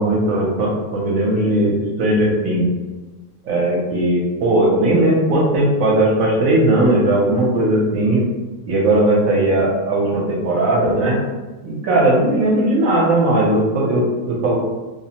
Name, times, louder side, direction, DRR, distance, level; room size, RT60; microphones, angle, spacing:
voice 1, 0.0-2.7 3.5-8.2 8.6-11.2 11.6-14.6, right 1 dB, 70° right, -3 dB, 1.0 m, -17 dB
2.6 x 2.0 x 2.8 m, 1.2 s
omnidirectional pair, 1.6 m